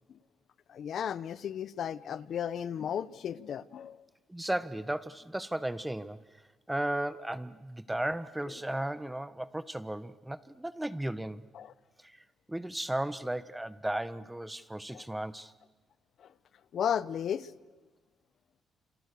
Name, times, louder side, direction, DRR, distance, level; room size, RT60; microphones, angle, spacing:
voice 1, 0.7-4.0 11.5-11.7 14.9-15.0 16.2-16.3 16.7-17.5, left 8 dB, 65° left, 0.8 m, -34 dB
voice 2, 4.3-6.2 6.7-11.4 12.0-12.2 12.5-15.5, right 1 dB, 10° right, 1.2 m, -35 dB
30.0 x 28.0 x 6.9 m
cardioid pair, 90°, 0 cm